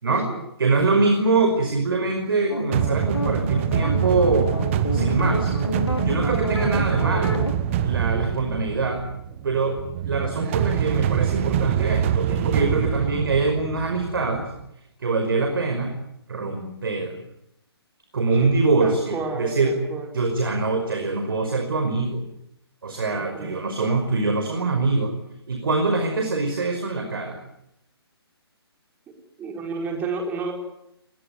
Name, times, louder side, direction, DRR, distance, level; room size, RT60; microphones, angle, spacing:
voice 1, 0.6-4.5 4.9-5.5 6.0-7.5 7.8-9.0 9.4-9.8 10.0-14.5 15.0-15.9 16.3-17.2 18.1-19.8 20.1-22.2 22.8-25.1 25.5-27.4, right 3 dB, 60° right, 5 dB, 5.4 m, -23 dB
sound 1, 2.5-7.5, left 1 dB, 90° left, 4.4 m, -29 dB
sound 2, 2.7-14.6, right 9 dB, 30° right, 1.5 m, -25 dB
voice 2, 18.8-20.1 23.1-23.6 29.4-30.5, right 4 dB, 15° right, 2 dB, 4.9 m, -31 dB
23.5 x 21.0 x 9.8 m, 0.80 s
figure-of-eight pair, 140°, 14 cm